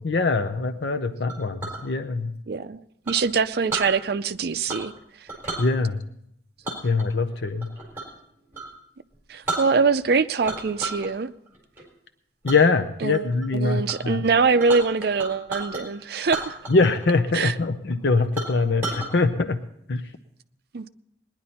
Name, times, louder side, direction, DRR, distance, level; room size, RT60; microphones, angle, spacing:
voice 1, 0.0-2.3 5.6-6.1 6.8-7.7 12.4-14.2 16.7-19.6 19.9-20.0, left 3 dB, 65° left, 0.7 m, -23 dB
Chink clink, 1.3-1.8 3.1-3.9 4.7-5.0 5.3-5.7 6.6-8.2 8.5-8.7 9.1-9.2 9.5-10.1 10.4-11.1 11.5-11.8 12.5-12.6 13.1-13.5 13.9-14.0 14.2-15.8 16.2-17.1 17.3-17.4 17.9-18.0 18.4-19.1, right 2 dB, 10° right, 4.0 m, -33 dB
voice 2, 2.5-2.8 3.1-4.9 9.3-11.3 13.0-13.3 13.5-16.6 17.3-17.5 20.7-20.9, right 5 dB, 55° right, 0.5 m, -23 dB
19.5 x 10.5 x 4.2 m
head